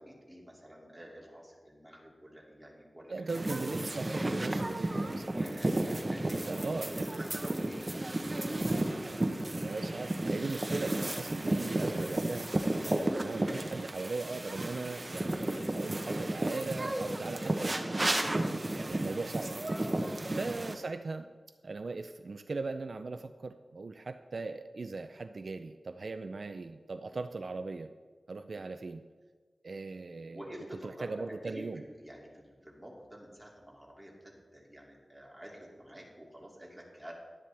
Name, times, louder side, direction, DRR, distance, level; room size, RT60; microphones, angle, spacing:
voice 1, 0.0-3.3 5.3-6.5 7.1-9.2 18.8-19.1 27.1-27.2 30.3-37.1, equal, 5° right, -3 dB, 2.5 m, -49 dB
voice 2, 3.1-5.3 5.7-5.8 6.5-7.1 9.6-12.5 13.1-18.2 18.7-19.5 20.3-21.3 21.6-27.9 28.3-29.0 29.6-30.5 30.8-31.8, right 3 dB, 65° right, 8 dB, 0.4 m, -39 dB
sound 1, 3.3-20.7, right 1 dB, 30° right, 0.9 m, -33 dB
11.0 x 10.0 x 3.4 m, 1.4 s
wide cardioid pair, 90°, 0 cm